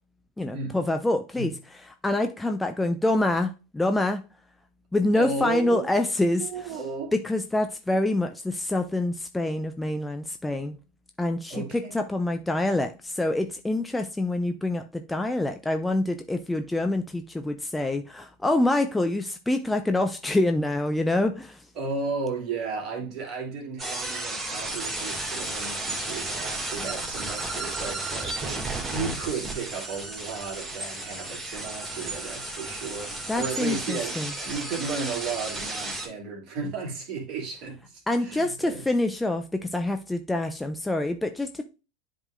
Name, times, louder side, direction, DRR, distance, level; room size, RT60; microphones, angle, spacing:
voice 1, 0.4-4.2 4.9-6.8 7.1-10.8 11.2-21.7 33.3-34.3 38.1-41.6, left 2 dB, 10° left, 0.7 m, -26 dB
voice 2, 5.1-5.9 6.4-7.1 11.5-11.9 21.8-38.8, right 4 dB, 45° right, 2.6 m, -34 dB
sound 1, 23.8-36.1, right 2 dB, 15° right, 2.0 m, -33 dB
11.0 x 3.7 x 2.4 m
figure-of-eight pair, 80°, 0 cm